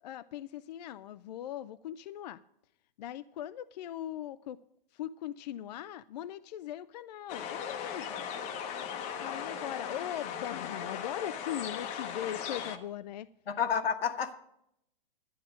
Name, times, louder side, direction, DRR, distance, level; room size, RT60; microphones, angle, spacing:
voice 1, 0.0-2.4 3.0-4.6 4.9-8.2 9.2-13.3, left 11 dB, 45° left, 0.4 m, -40 dB
sound 1, 7.3-12.8, left 7 dB, 25° left, 0.9 m, -38 dB
voice 2, 13.5-14.4, left 7 dB, 80° left, 1.5 m, -30 dB
11.5 x 10.0 x 5.0 m
hypercardioid pair, 145°, 29 cm